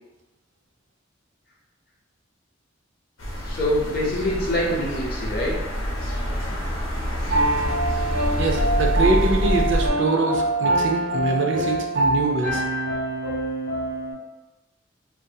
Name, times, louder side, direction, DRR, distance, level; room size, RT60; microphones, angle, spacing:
sound 1, 3.2-9.9, equal, 85° left, 0.7 m, -26 dB
voice 1, 3.4-5.5, left 1 dB, 45° left, -3 dB, 0.6 m, -25 dB
Piano, 7.3-14.1, right 1 dB, 90° right, 1.2 m, -24 dB
voice 2, 8.4-12.6, right 3 dB, 60° right, 1 dB, 0.4 m, -24 dB
2.6 x 2.2 x 2.6 m, 1.1 s
head